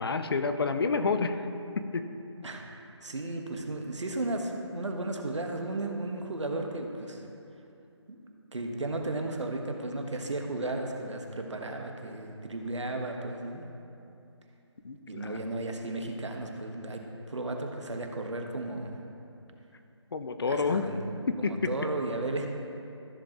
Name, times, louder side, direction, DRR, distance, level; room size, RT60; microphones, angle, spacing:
voice 1, 0.0-1.5 1.8-2.1 14.8-15.6 20.1-20.9 21.3-21.7, left 4 dB, 55° left, 9 dB, 0.6 m, -29 dB
voice 2, 3.0-7.2 8.1-8.2 8.5-13.6 15.1-19.0 20.5-21.0 21.4-22.5, right 2 dB, 75° right, 3 dB, 1.4 m, -34 dB
14.0 x 7.1 x 3.0 m, 2.7 s
figure-of-eight pair, 160°, 15 cm